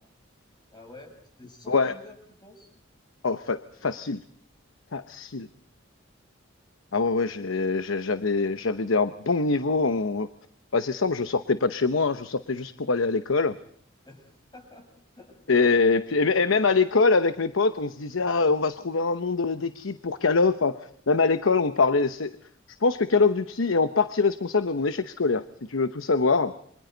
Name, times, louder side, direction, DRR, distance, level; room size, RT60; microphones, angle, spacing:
voice 1, 0.7-2.7 14.0-14.9 15.2-15.6, left 1 dB, 20° left, 0 dB, 7.4 m, -49 dB
voice 2, 3.2-4.2 4.9-5.5 6.9-10.3 10.7-13.5 15.5-22.4 22.8-25.4 25.7-26.5, left 4 dB, 90° left, 11 dB, 0.9 m, -24 dB
28.5 x 25.5 x 4.0 m, 0.65 s
head